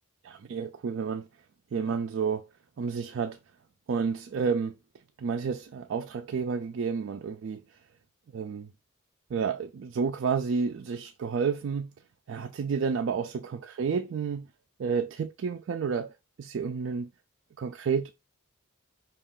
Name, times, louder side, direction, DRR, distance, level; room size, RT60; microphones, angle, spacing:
voice 1, 0.2-1.3 1.7-2.5 2.8-3.4 3.9-4.8 5.2-7.8 8.3-8.7 9.3-11.9 12.3-14.5 14.8-17.1 17.6-18.1, right 5 dB, 60° right, 0.3 m, -30 dB
5.3 x 2.4 x 3.7 m
head